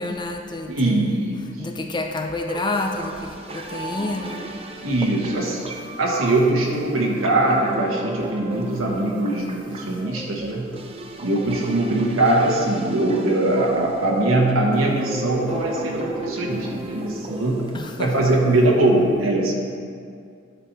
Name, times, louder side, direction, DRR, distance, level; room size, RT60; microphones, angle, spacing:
voice 1, 0.0-1.2 1.6-4.5 5.0-5.1 17.7-18.1, left 2 dB, 25° left, 4 dB, 0.5 m, -29 dB
voice 2, 0.7-1.7 4.8-5.6 6.0-10.7 11.2-17.6 18.0-19.5, right 2 dB, 90° right, -2 dB, 1.1 m, -21 dB
sound 1, 2.5-18.5, right 2 dB, 30° right, 0.6 m, -35 dB
10.0 x 4.3 x 4.5 m, 2.2 s
head